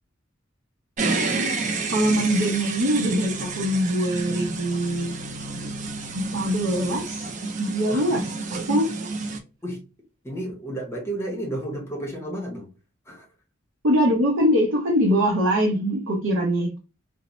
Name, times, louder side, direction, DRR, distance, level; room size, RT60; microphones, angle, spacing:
sound 1, 1.0-9.4, right 3 dB, 35° right, 0.4 m, -30 dB
voice 1, 1.9-5.7 6.1-7.3 7.6-9.1 13.8-16.8, equal, 75° right, 0.7 m, -23 dB
voice 2, 7.9-8.2 9.6-9.8 10.2-12.7 13.1-13.3, right 1 dB, 10° left, 0.7 m, -32 dB
2.6 x 2.0 x 2.9 m
head